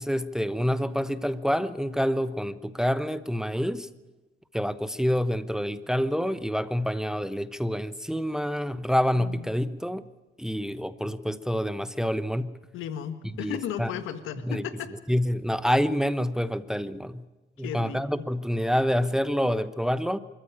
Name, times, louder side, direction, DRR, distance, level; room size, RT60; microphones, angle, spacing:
voice 1, 0.0-3.9 4.5-10.1 10.4-12.5 13.4-13.9 14.4-14.6 15.1-17.2 17.6-20.2, equal, 5° right, 13 dB, 1.0 m, -27 dB
voice 2, 9.2-9.5 12.7-14.9 17.6-18.3, left 9 dB, 90° left, 10 dB, 1.8 m, -35 dB
25.5 x 14.0 x 8.8 m, 1.2 s
cardioid pair, 90°, 20 cm